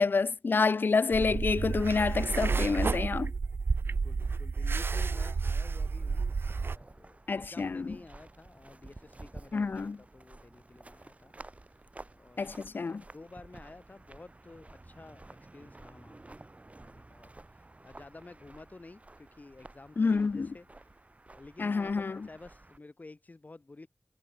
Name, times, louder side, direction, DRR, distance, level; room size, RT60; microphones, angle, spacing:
voice 1, 0.0-3.3 7.3-8.0 9.5-10.0 12.4-13.0 20.0-20.5 21.6-22.2, left 4 dB, 65° left, 0.3 m, -28 dB
sound 1, 1.1-6.8, right 4 dB, 85° right, 0.6 m, -31 dB
voice 2, 3.8-6.2 6.5-11.3 12.1-12.5 13.1-16.5 16.8-21.0 21.3-23.9, left 2 dB, 45° left, 1.5 m, -52 dB
sound 2, 5.1-22.8, right 2 dB, 35° right, 7.2 m, -52 dB
wide cardioid pair, 80°, 4 cm